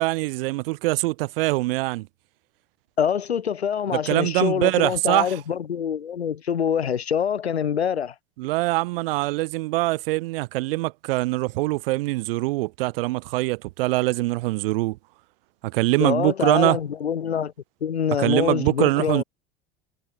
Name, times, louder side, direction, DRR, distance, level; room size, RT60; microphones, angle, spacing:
voice 1, 0.0-2.1 3.9-5.4 8.4-15.0 15.6-16.8 18.2-19.2, right 21 dB, 60° right, 2.3 m, -23 dB
voice 2, 3.0-8.1 16.0-17.5 17.8-19.2, left 8 dB, 80° left, 4.0 m, -25 dB
figure-of-eight pair, 75°, 32 cm